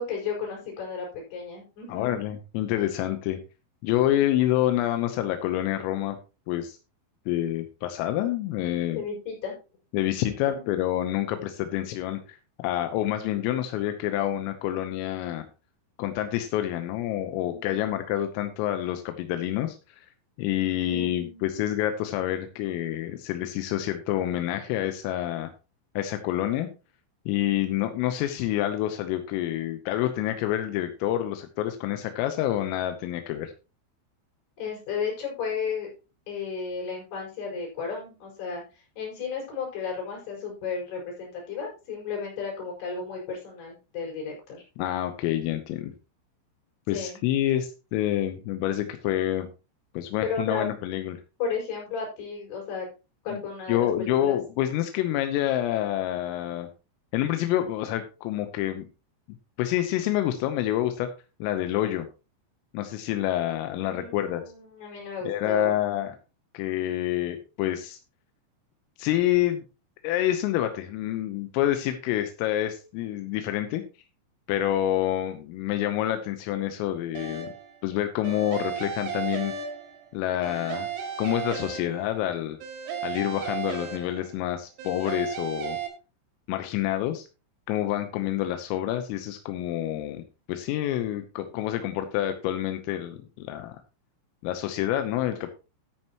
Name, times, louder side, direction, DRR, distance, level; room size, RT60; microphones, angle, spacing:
voice 1, 0.0-2.2 8.9-9.6 17.5-17.9 20.9-21.7 34.6-35.9 36.3-44.6 46.9-47.2 50.2-50.7 51.4-52.9 53.2-54.4 63.8-65.7, left 5 dB, 55° left, -2 dB, 7.1 m, -33 dB
voice 2, 1.9-3.4 3.8-6.2 6.5-6.8 7.3-9.0 9.9-15.5 16.0-20.1 20.4-25.5 26.0-26.7 27.3-33.5 44.8-45.9 46.9-49.5 50.0-51.2 53.3-53.4 53.7-56.7 57.1-58.9 59.6-61.1 61.4-62.1 62.7-64.4 65.2-66.2 66.6-68.0 69.0-69.6 70.0-73.8 74.5-77.5 77.8-79.5 80.1-80.9 81.2-82.6 83.0-85.8 86.5-87.3 87.7-90.2 90.5-93.8 94.4-95.5, left 13 dB, 90° left, 7 dB, 3.6 m, -27 dB
sound 1, 77.2-77.7 78.2-80.1 80.4-82.2 82.6-84.4 84.8-85.9, right 7 dB, 90° right, 4.7 m, -34 dB
13.5 x 8.9 x 3.0 m, 0.30 s
omnidirectional pair, 5.8 m